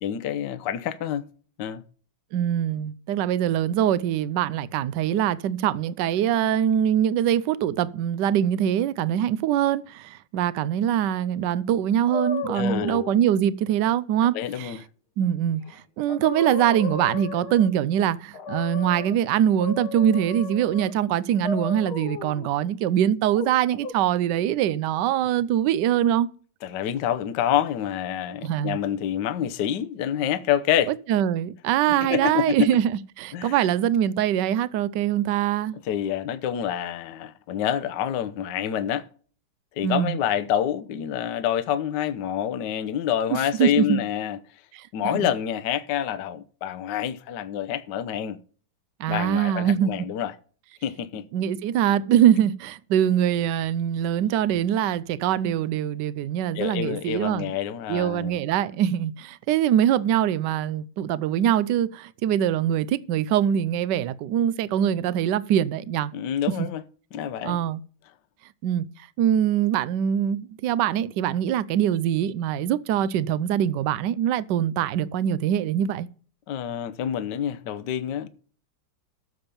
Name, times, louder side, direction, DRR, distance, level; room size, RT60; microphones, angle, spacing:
voice 1, 0.0-1.3 1.6-1.8 12.5-13.0 14.3-14.8 26.6-30.9 32.0-32.7 33.3-33.7 35.8-39.0 39.8-44.4 44.9-48.4 49.1-50.3 50.8-51.2 56.5-58.4 66.1-66.8 67.1-67.6 76.5-78.3, left 10 dB, 65° left, 1.3 m, -27 dB
voice 2, 2.3-14.7 15.2-26.3 28.4-28.8 30.9-32.9 33.2-35.7 39.8-40.2 43.3-44.0 44.7-44.8 45.1-45.3 49.0-49.9 51.3-57.5 57.9-66.1 66.6-66.7 67.4-67.8 68.6-68.9 69.2-76.1, right 10 dB, 70° right, 1.1 m, -23 dB
sound 1, 12.1-13.2 15.7-15.8 16.1-17.8 18.3-19.1 19.6-20.9 21.4-22.5 23.3-23.9, left 5 dB, 85° left, 2.4 m, -33 dB
13.5 x 7.1 x 5.3 m
omnidirectional pair, 2.3 m